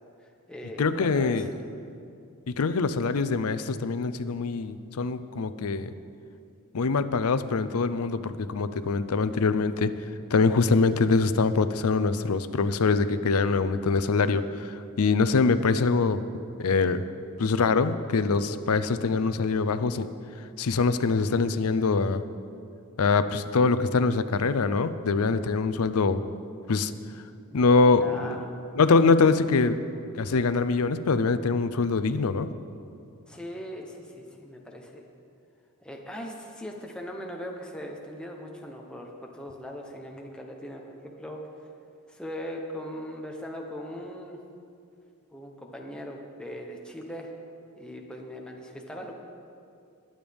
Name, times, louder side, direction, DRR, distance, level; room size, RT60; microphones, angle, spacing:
voice 1, 0.0-1.5 27.5-27.6 28.0-28.5 33.3-35.0 35.8-41.4 42.1-44.4 45.3-47.3 47.8-49.1, equal, 5° left, 0 dB, 0.9 m, -40 dB
voice 2, 0.8-1.5 2.5-5.9 6.7-9.9 10.3-16.2 16.6-17.0 17.4-20.1 20.6-22.2 23.0-26.2 26.7-26.9 27.5-28.4 28.7-29.8 30.2-32.5, left 4 dB, 80° left, 12 dB, 0.5 m, -24 dB
21.0 x 8.7 x 3.5 m, 2.5 s
head